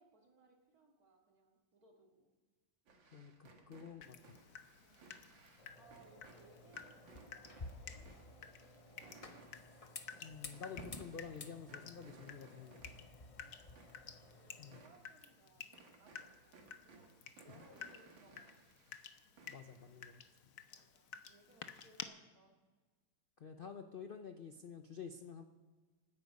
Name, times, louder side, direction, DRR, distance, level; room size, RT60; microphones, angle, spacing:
voice 1, 0.0-2.3 4.8-5.2 5.8-9.4 13.4-16.6 16.8-17.1 17.4-18.7 20.7-22.6, right 2 dB, 50° right, 0 dB, 2.7 m, -67 dB
sound 1, 2.9-20.3, right 4 dB, 90° right, 2.5 m, -63 dB
voice 2, 3.1-4.4 10.2-13.1 14.6-14.8 17.5-17.6 19.5-20.4 23.4-25.4, left 6 dB, 80° left, 7 dB, 0.5 m, -50 dB
Water tap faucet / Drip, 4.0-22.0, left 7 dB, 55° left, 1.1 m, -54 dB
sound 2, 5.6-14.9, left 3 dB, 35° left, 0.6 m, -54 dB
25.5 x 9.9 x 5.4 m, 1.4 s
omnidirectional pair, 2.0 m